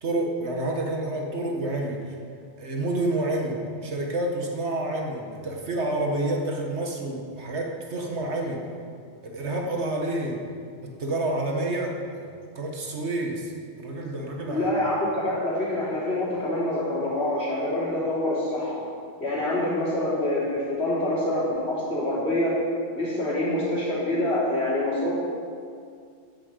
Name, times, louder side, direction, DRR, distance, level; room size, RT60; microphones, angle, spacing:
voice 1, 0.0-2.0 2.6-8.7 9.2-10.4 10.8-12.3 12.5-13.5 13.8-14.7, right 1 dB, 70° right, 1 dB, 1.8 m, -29 dB
voice 2, 14.5-18.8 19.2-22.6 22.9-25.2, left 1 dB, 65° left, -8 dB, 4.0 m, -26 dB
10.5 x 7.5 x 8.0 m, 2.2 s
omnidirectional pair, 1.2 m